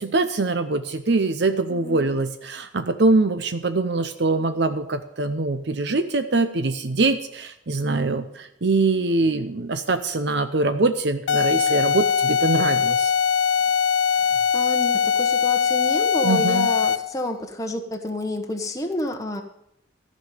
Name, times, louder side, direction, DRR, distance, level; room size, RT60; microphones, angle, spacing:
voice 1, 0.0-13.1 16.2-16.7, right 3 dB, 60° right, 9 dB, 0.7 m, -23 dB
voice 2, 1.7-2.1 14.1-14.2 14.5-19.4, left 1 dB, 15° left, 3 dB, 1.0 m, -29 dB
sound 1, 11.3-17.2, left 7 dB, 75° left, 0.4 m, -21 dB
14.5 x 5.4 x 9.3 m, 0.79 s
head